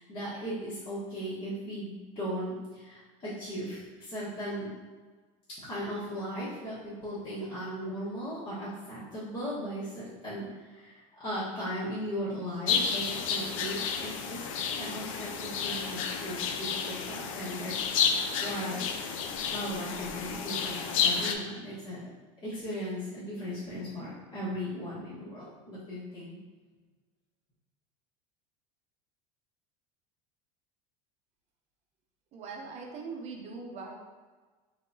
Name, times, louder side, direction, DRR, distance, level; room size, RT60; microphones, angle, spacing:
voice 1, 0.0-4.7 5.6-14.4 14.7-17.8 18.1-19.2 19.5-22.1 22.4-26.4, equal, 35° left, -11 dB, 1.4 m, -37 dB
sound 1, 12.7-21.4, left 6 dB, 90° left, 0.5 m, -31 dB
voice 2, 32.3-33.9, right 4 dB, 45° right, 1 dB, 0.7 m, -41 dB
3.6 x 3.6 x 2.7 m, 1.4 s
supercardioid pair, 115°, 17 cm